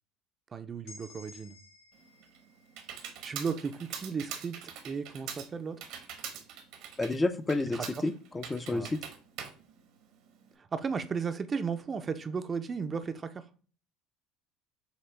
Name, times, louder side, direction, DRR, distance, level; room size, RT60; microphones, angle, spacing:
voice 1, 0.5-1.6 3.2-4.6 4.8-5.9 7.7-7.9 8.7-8.9 10.6-13.5, right 5 dB, 30° right, 0.5 m, -35 dB
sound 1, 0.9-4.7, left 3 dB, 80° left, 1.6 m, -56 dB
Computer keyboard, 1.9-10.5, right 8 dB, 75° right, 1.0 m, -44 dB
voice 2, 7.0-9.0, left 2 dB, 20° left, 0.5 m, -30 dB
6.7 x 2.3 x 3.3 m
supercardioid pair, 95°, 0 cm